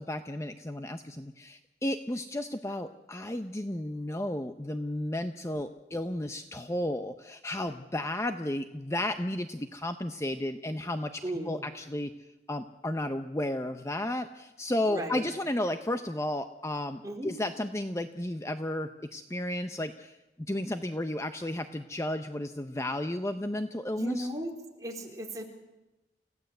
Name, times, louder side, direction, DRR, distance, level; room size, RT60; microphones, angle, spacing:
voice 1, 0.0-12.1 12.5-20.2 20.5-24.3, left 1 dB, 15° left, 8 dB, 0.8 m, -33 dB
voice 2, 11.2-11.6 14.9-15.2 17.0-17.3 23.9-24.5 24.8-25.4, right 1 dB, 20° right, 1 dB, 3.6 m, -35 dB
29.5 x 16.5 x 7.9 m, 1.0 s
head